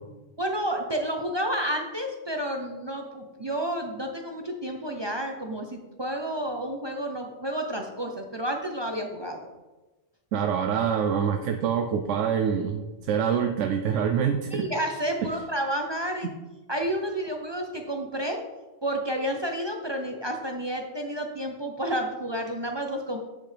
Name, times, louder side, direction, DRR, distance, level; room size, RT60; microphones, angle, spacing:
voice 1, 0.4-9.5 14.5-16.3 16.7-18.4 18.8-23.2, right 1 dB, 35° right, 3 dB, 0.4 m, -30 dB
voice 2, 10.3-14.7 15.2-15.3, right 7 dB, 75° right, 5 dB, 0.9 m, -25 dB
8.5 x 6.5 x 3.3 m, 1.1 s
omnidirectional pair, 1.4 m